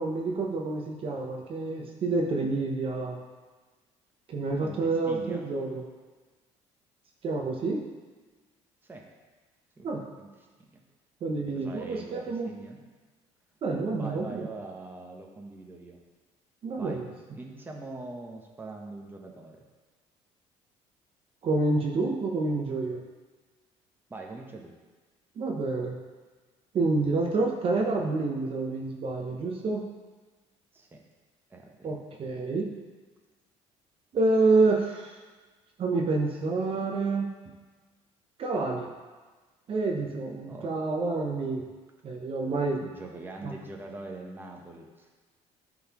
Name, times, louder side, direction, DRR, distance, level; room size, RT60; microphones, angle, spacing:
voice 1, 0.0-3.2 4.3-5.8 7.2-7.8 9.8-10.0 11.2-12.6 13.6-14.5 16.6-17.1 21.4-23.0 25.4-26.0 26.7-29.8 31.8-32.7 34.1-35.2 35.8-37.3 38.4-38.9 39.7-41.7 42.0-42.8 43.4-43.5, right 3 dB, 45° right, 1 dB, 0.9 m, -28 dB
voice 2, 4.6-5.5 8.8-9.0 9.8-10.3 10.7-10.8 11.5-12.8 14.0-16.0 16.8-17.0 17.3-19.6 24.1-24.7 30.7-31.0 31.5-31.9 40.5-40.7 42.7-45.1, right 2 dB, 15° right, 0 dB, 1.0 m, -43 dB
11.0 x 4.0 x 3.0 m, 1.4 s
cardioid pair, 105°, 13 cm